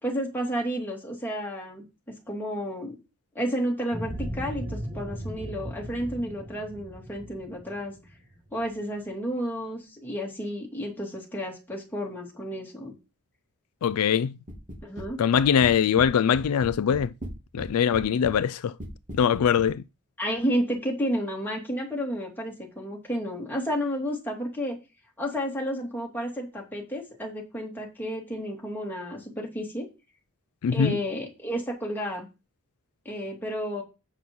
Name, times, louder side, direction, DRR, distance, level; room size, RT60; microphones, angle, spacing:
voice 1, 0.0-3.0 3.3-7.9 8.5-12.9 14.8-15.2 20.2-24.8 25.2-29.9 30.7-32.3 33.0-33.8, equal, 10° left, 2.7 m, -31 dB
sound 1, 3.9-8.7, right 1 dB, 15° right, 1.8 m, -37 dB
voice 2, 13.8-14.4 15.2-17.1 17.5-18.8 19.1-19.8 30.6-31.0, left 7 dB, 75° left, 0.4 m, -22 dB
sound 2, 14.5-15.1 15.4-16.1 16.3-17.7 17.9-18.4 18.8-19.7, equal, 35° right, 2.9 m, -38 dB
7.9 x 6.0 x 5.4 m
head